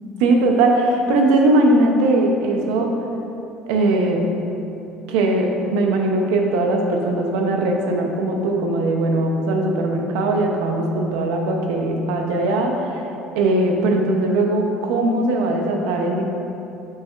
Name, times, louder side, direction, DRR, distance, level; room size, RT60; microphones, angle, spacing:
voice 1, 0.2-3.0 3.7-4.3 5.1-13.1 13.3-16.3, right 2 dB, 85° right, 2 dB, 0.7 m, -20 dB
6.6 x 5.8 x 2.5 m, 2.9 s
cardioid pair, 175°, 0 cm